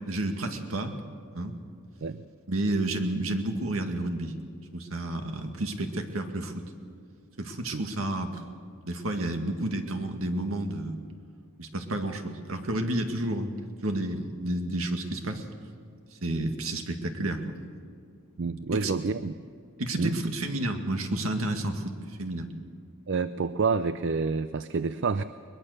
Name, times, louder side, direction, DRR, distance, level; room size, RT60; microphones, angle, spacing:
voice 1, 0.1-1.0 1.3-1.5 2.5-4.3 4.7-6.6 7.4-8.4 8.8-11.0 11.6-13.5 13.8-15.4 16.2-17.6 18.7-18.9 19.8-21.9 22.2-22.5, right 1 dB, 80° right, 5 dB, 2.0 m, -30 dB
voice 2, 18.4-19.3 20.0-20.2 23.1-25.2, right 4 dB, 60° right, 13 dB, 0.5 m, -28 dB
22.0 x 21.0 x 6.7 m, 2.2 s
head